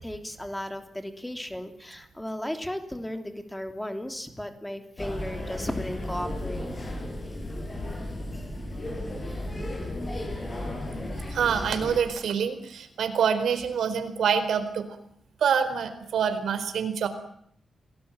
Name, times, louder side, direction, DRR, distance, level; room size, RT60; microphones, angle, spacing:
voice 1, 0.0-6.7, left 1 dB, 5° left, 7 dB, 3.2 m, -35 dB
sound 1, 5.0-12.0, left 1 dB, 20° left, 6.7 m, -34 dB
voice 2, 11.3-14.9 15.4-17.1, right 7 dB, 90° right, 10 dB, 4.3 m, -26 dB
28.5 x 19.5 x 9.0 m, 0.68 s
wide cardioid pair, 165°, 0 cm